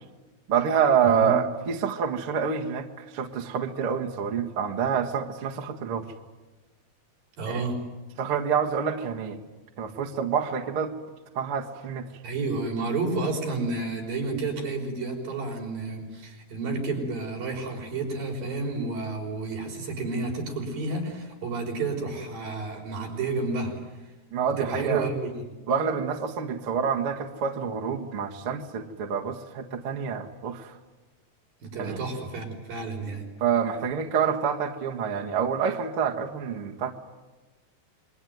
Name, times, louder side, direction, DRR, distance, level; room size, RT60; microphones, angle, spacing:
voice 1, 0.5-6.1 7.5-7.6 8.2-9.4 9.8-10.9 11.4-12.1 24.3-25.1 25.7-30.7 31.8-32.0 33.4-36.9, right 7 dB, 50° right, 2 dB, 2.0 m, -27 dB
voice 2, 1.0-1.3 7.4-7.8 12.2-23.7 24.6-25.3 31.6-33.3, right 3 dB, 70° right, 1 dB, 7.2 m, -30 dB
27.5 x 23.5 x 9.4 m, 1.2 s
omnidirectional pair, 4.3 m